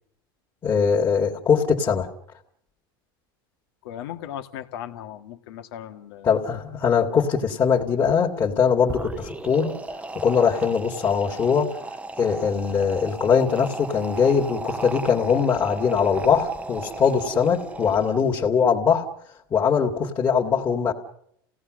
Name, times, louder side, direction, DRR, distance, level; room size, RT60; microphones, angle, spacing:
voice 1, 0.6-2.1 6.2-9.7 10.1-11.7 12.2-19.1 19.5-20.9, left 6 dB, 30° left, -2 dB, 2.5 m, -21 dB
voice 2, 3.8-6.4, left 10 dB, 75° left, 6 dB, 1.9 m, -37 dB
sound 1, 8.8-18.5, right 2 dB, 10° right, 1.0 m, -35 dB
29.0 x 17.5 x 6.5 m, 0.72 s
supercardioid pair, 110°, 12 cm